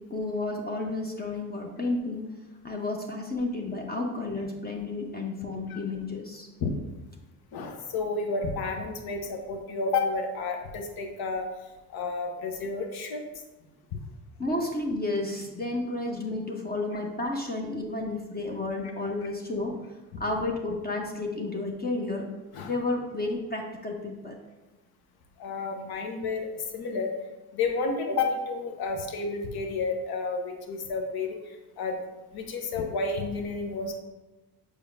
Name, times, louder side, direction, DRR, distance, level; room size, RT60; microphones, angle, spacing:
voice 1, 0.1-2.3 2.6-6.5 14.4-19.8 20.2-22.3 22.6-24.3, left 2 dB, 20° left, 1 dB, 1.0 m, -31 dB
voice 2, 7.5-11.5 11.9-13.2 22.5-22.7 25.4-27.1 27.5-32.0 32.3-34.0, left 3 dB, 55° left, 3 dB, 1.1 m, -31 dB
6.9 x 5.2 x 2.7 m, 1.1 s
hypercardioid pair, 55°, 46 cm